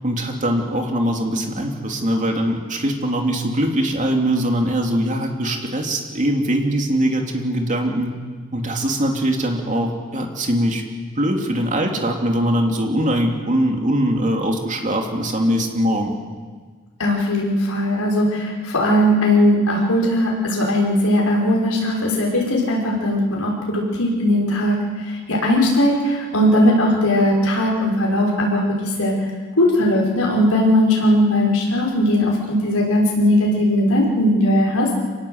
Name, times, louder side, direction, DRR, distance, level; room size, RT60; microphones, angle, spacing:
voice 1, 0.0-8.1 8.5-10.8 11.2-16.1, right 1 dB, 35° right, 2 dB, 3.0 m, -21 dB
voice 2, 17.0-24.8 25.1-29.1 29.6-35.0, left 1 dB, 75° left, -2 dB, 5.9 m, -18 dB
26.0 x 19.0 x 8.1 m, 1.5 s
head